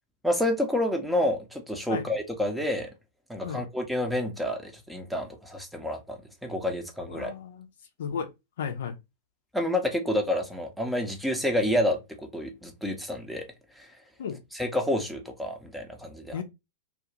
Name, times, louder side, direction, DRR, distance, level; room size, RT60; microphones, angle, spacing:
voice 1, 0.2-2.9 3.3-7.3 9.5-13.5 13.8-13.9 14.5-16.4, left 1 dB, 5° right, 0.7 m, -29 dB
voice 2, 7.1-7.7 8.0-8.3 8.6-9.0 14.2-14.4 16.3-16.4, left 7 dB, 65° left, 0.5 m, -33 dB
2.4 x 2.3 x 2.9 m
figure-of-eight pair, 100°, 0 cm